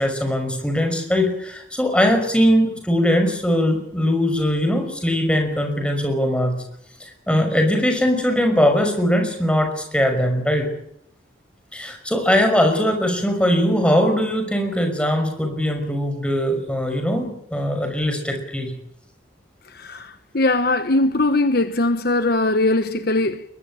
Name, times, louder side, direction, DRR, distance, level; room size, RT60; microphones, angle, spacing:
voice 1, 0.0-6.6 7.0-10.7 11.7-18.7, equal, 5° left, 5.5 m, -20 dB
voice 2, 19.7-23.4, left 2 dB, 50° left, 1.1 m, -20 dB
22.5 x 21.5 x 8.9 m
head